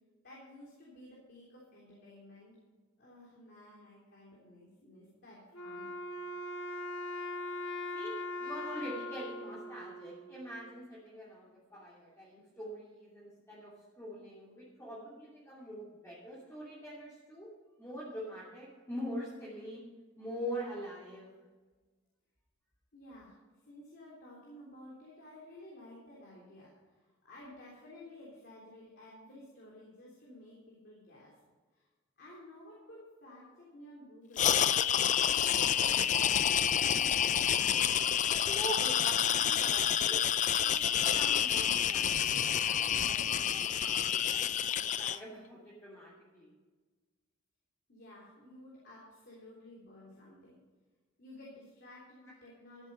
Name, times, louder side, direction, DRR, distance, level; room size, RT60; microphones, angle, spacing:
voice 1, 0.2-2.6 3.0-5.9 22.9-23.4 23.7-31.3 31.7-31.9 32.2-34.8 35.4-36.4 36.6-37.4 47.9-50.6 51.2-52.9, left 1 dB, 55° left, -5 dB, 3.3 m, -53 dB
Wind instrument woodwind instrument, 5.5-10.7, left 2 dB, 75° left, 1.5 m, -41 dB
voice 2, 7.9-17.5 17.8-19.8 20.2-21.3 38.3-40.2 40.6-42.2 42.6-46.5, equal, 15° left, -8 dB, 2.7 m, -44 dB
sound 1, 34.4-45.2, left 9 dB, 35° left, 0.4 m, -28 dB
13.5 x 8.1 x 5.5 m, 1.3 s
head